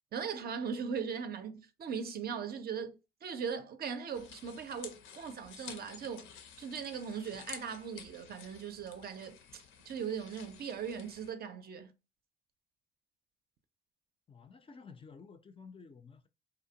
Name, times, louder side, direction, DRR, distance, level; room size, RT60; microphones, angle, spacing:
voice 1, 0.1-6.3 6.6-11.9, right 6 dB, 50° right, 0.5 m, -39 dB
sound 1, 4.1-11.3, left 7 dB, 80° left, 0.5 m, -52 dB
voice 2, 14.3-16.3, left 5 dB, 30° left, 0.3 m, -52 dB
2.7 x 2.1 x 2.7 m
cardioid pair, 90°, 20 cm